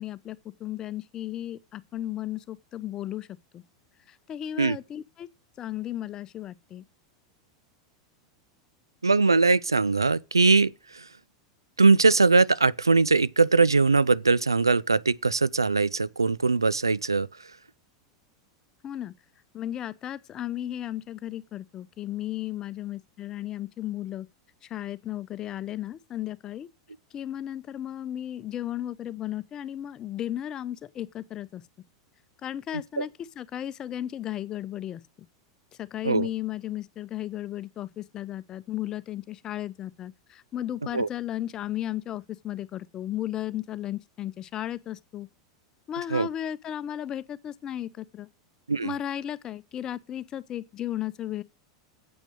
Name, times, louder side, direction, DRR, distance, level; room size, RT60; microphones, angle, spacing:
voice 1, 0.0-3.3 3.5-3.6 4.1-5.3 5.6-6.8 18.8-19.1 19.5-24.3 24.6-26.7 27.1-31.6 32.4-35.0 35.8-45.3 45.9-48.3 48.8-51.4, left 12 dB, 30° left, 0.7 m, -35 dB
voice 2, 9.0-11.0 11.8-17.3 33.0-33.1 36.0-36.3 40.9-41.1 46.1-46.3 48.7-48.9, right 4 dB, 85° right, 0.5 m, -21 dB
9.0 x 8.2 x 6.5 m
figure-of-eight pair, 90°, 2 cm